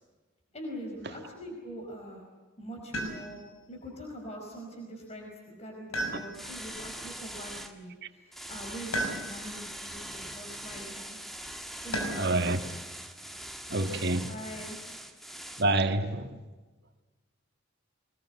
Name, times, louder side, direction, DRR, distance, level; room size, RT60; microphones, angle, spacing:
voice 1, 0.5-2.2 2.6-3.4 3.7-11.2 11.8-12.7 13.7-14.8, equal, 30° left, 5.1 m, -43 dB
sound 1, 2.9-3.6 5.9-6.7 8.9-9.6 11.9-12.4 14.1-14.8, right 1 dB, 90° left, 6.0 m, -35 dB
sound 2, 6.3-7.7 8.3-15.6, right 1 dB, ahead, 1.7 m, -42 dB
voice 2, 12.1-12.6 13.7-14.3 15.6-16.3, right 2 dB, 50° right, 1.8 m, -27 dB
24.0 x 21.0 x 8.2 m
head